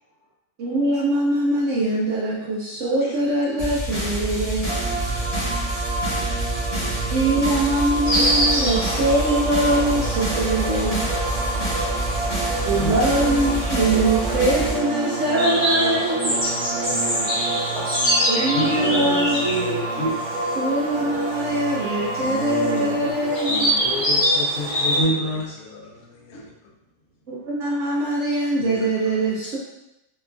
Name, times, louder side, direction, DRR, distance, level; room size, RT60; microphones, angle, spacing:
voice 1, 0.6-4.7 7.1-11.1 12.7-16.4 18.3-19.4 20.6-23.7 27.3-29.6, right 1 dB, 70° right, -5 dB, 0.8 m, -22 dB
voice 2, 3.0-3.3 4.3-6.3 6.6-7.2 7.8-8.2 15.7-17.4 17.7-17.8 19.5-19.8 22.3-24.0 25.0-26.5 28.6-29.3, equal, 85° left, -1 dB, 1.2 m, -38 dB
sound 1, 3.6-14.7, right 1 dB, 30° left, 0.9 m, -27 dB
sound 2, 4.7-23.1, right 3 dB, 90° right, 1.1 m, -30 dB
Insect, 8.0-25.0, equal, 30° right, 1.1 m, -26 dB
voice 3, 12.6-13.2 18.5-20.2 23.8-25.7 26.3-26.4, equal, 65° left, -6 dB, 1.1 m, -27 dB
2.9 x 2.3 x 2.4 m, 0.89 s
omnidirectional pair, 1.6 m